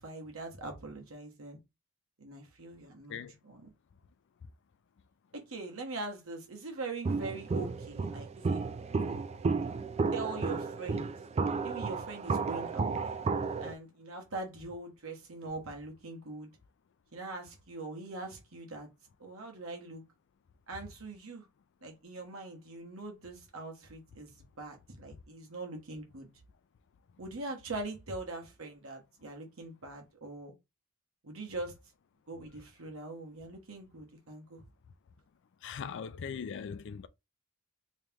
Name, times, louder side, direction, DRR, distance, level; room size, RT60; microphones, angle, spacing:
voice 1, 0.0-1.6 2.2-3.7 5.3-9.2 10.1-11.1 11.6-12.9 13.6-16.5 17.1-18.9 19.2-20.0 20.7-21.4 21.8-24.3 24.6-26.3 27.2-30.5 31.2-31.8 32.3-34.6, right 3 dB, 75° right, 1.2 m, -42 dB
Walk footsteps, 7.0-13.7, right 4 dB, 30° right, 0.3 m, -32 dB
voice 2, 35.6-37.1, left 6 dB, 60° left, 0.4 m, -40 dB
3.2 x 2.9 x 3.5 m
head